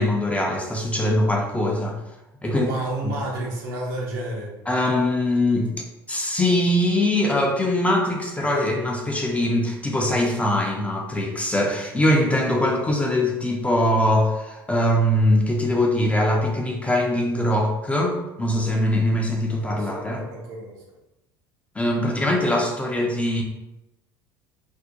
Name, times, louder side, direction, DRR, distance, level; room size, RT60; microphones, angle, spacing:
voice 1, 0.0-2.0 2.4-2.7 3.0-3.1 4.7-5.7 6.1-20.2 21.8-23.4, left 1 dB, 10° left, 0 dB, 0.4 m, -22 dB
voice 2, 2.4-4.5 19.6-20.8, right 2 dB, 65° right, -3 dB, 0.8 m, -31 dB
2.5 x 2.1 x 2.7 m, 0.96 s
figure-of-eight pair, 70°, 12 cm